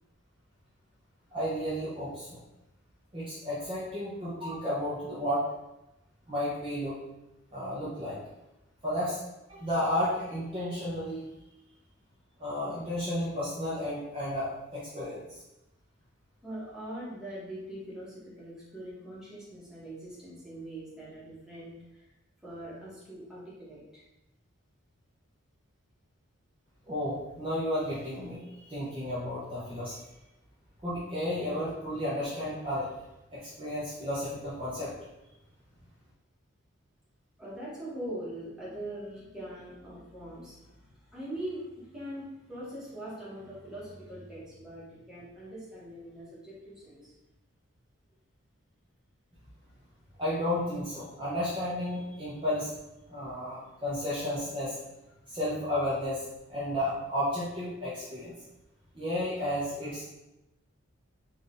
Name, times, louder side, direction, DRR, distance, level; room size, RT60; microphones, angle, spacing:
voice 1, 1.3-2.4 3.1-5.5 6.3-7.0 7.5-8.2 8.8-9.2 9.5-11.2 12.4-15.4 26.9-30.0 30.8-32.9 33.3-34.9 50.2-52.7 53.1-54.8 55.3-58.3 58.9-60.1, left 1 dB, 25° right, -9 dB, 0.8 m, -32 dB
voice 2, 16.4-22.1 22.4-24.0 37.4-47.1, right 1 dB, 5° right, -8 dB, 1.2 m, -42 dB
3.9 x 2.6 x 3.7 m, 0.95 s
head